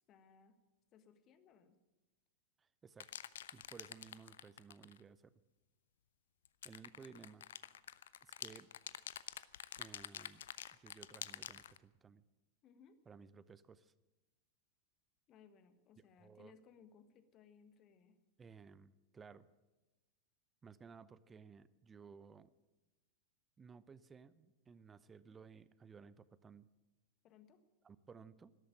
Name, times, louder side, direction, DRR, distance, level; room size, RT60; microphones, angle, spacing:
voice 1, 0.1-0.6 0.9-1.8 12.6-13.0 15.3-18.2 27.2-27.6, left 6 dB, 35° left, 11 dB, 1.4 m, -64 dB
voice 2, 2.6-3.1 3.5-5.3 6.6-7.5 8.2-8.7 9.8-10.4 10.8-12.2 13.1-13.9 16.2-16.5 18.4-19.5 20.6-22.5 23.6-26.7 27.8-28.5, right 5 dB, 20° right, 18 dB, 0.6 m, -57 dB
sound 1, 3.0-5.0 6.4-11.8, left 10 dB, 60° left, 0.5 m, -48 dB
13.0 x 12.5 x 8.8 m, 1.1 s
figure-of-eight pair, 90°, 0 cm